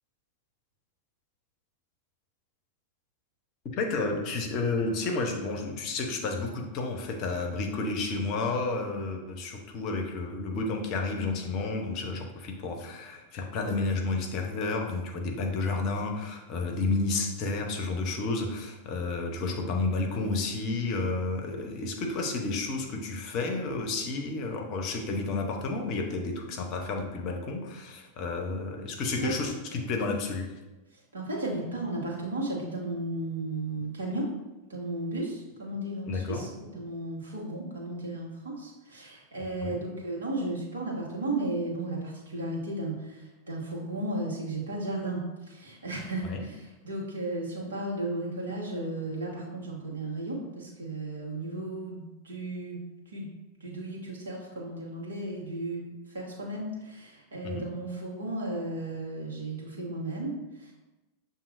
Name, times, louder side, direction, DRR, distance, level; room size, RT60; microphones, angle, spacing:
voice 1, 3.8-30.5 36.1-36.5 39.6-39.8 46.3-46.4 57.4-57.6, left 3 dB, 40° left, 3 dB, 0.7 m, -31 dB
voice 2, 30.9-34.3 34.7-53.3 53.6-60.7, right 2 dB, 70° right, -3 dB, 1.3 m, -34 dB
6.9 x 2.7 x 2.5 m, 1.1 s
figure-of-eight pair, 90°, 0 cm